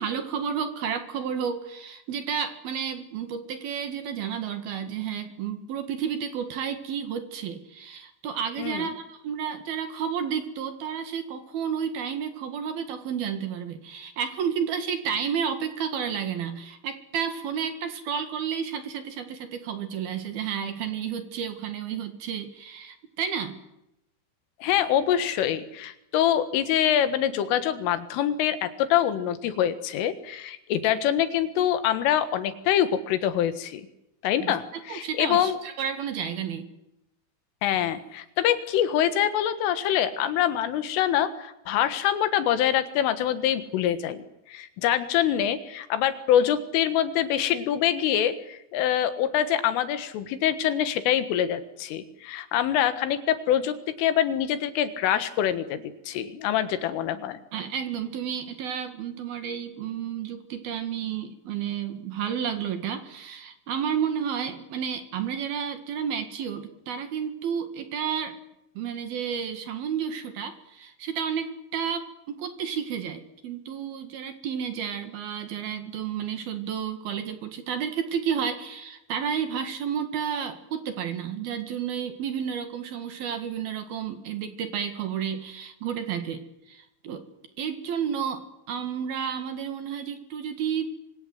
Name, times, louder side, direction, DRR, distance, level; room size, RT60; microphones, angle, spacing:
voice 1, 0.0-23.6 34.4-34.6 34.9-36.7 57.5-68.3 68.7-87.2 87.6-90.9, right 7 dB, 60° right, 8 dB, 3.2 m, -31 dB
voice 2, 8.6-8.9 24.6-33.9 34.2-35.6 37.6-57.4, left 10 dB, 80° left, 11 dB, 4.1 m, -25 dB
26.0 x 24.5 x 7.9 m, 0.86 s
omnidirectional pair, 5.7 m